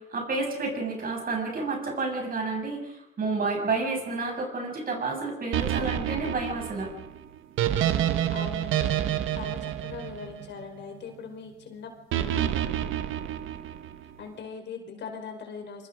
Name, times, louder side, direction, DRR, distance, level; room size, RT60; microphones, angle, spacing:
voice 1, 0.0-6.9, right 3 dB, 45° right, 2 dB, 7.9 m, -30 dB
sound 1, 5.5-10.8 12.1-14.0, right 11 dB, 85° right, 1.4 m, -28 dB
voice 2, 8.3-8.9 9.3-11.9 14.2-15.9, left 6 dB, 65° left, 5 dB, 4.8 m, -40 dB
25.5 x 24.0 x 5.1 m, 0.84 s
cardioid pair, 90°, 20 cm